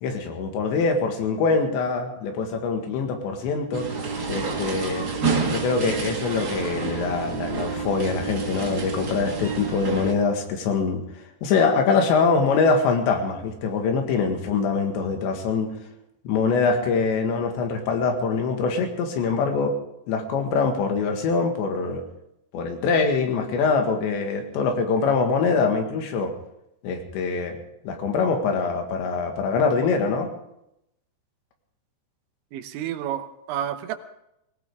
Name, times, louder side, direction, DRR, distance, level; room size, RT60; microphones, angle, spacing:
voice 1, 0.0-3.9 4.3-5.1 5.5-11.0 11.4-15.7 16.3-19.8 20.1-22.1 22.5-26.3 26.8-27.6 27.8-30.3, left 4 dB, 80° left, 4 dB, 4.0 m, -24 dB
sound 1, 3.7-10.1, right 4 dB, 55° right, 1.1 m, -29 dB
voice 2, 32.5-34.0, right 10 dB, 90° right, 8 dB, 3.4 m, -30 dB
19.5 x 18.0 x 3.6 m, 0.82 s
omnidirectional pair, 5.1 m